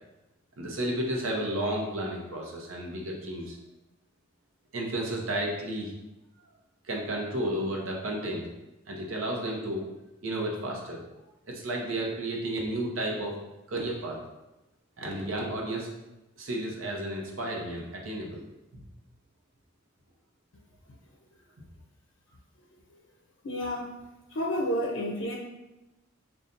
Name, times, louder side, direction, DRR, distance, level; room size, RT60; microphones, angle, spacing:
voice 1, 0.6-3.6 4.7-5.9 6.8-8.5 8.9-9.8 10.2-11.0 11.5-13.3 13.7-14.2 15.0-15.9 16.4-18.4 18.7-18.8, right 1 dB, 80° right, 0 dB, 0.8 m, -32 dB
voice 2, 23.4-24.0 24.3-25.3, equal, 65° left, -2 dB, 0.5 m, -30 dB
5.2 x 2.3 x 2.5 m, 0.97 s
head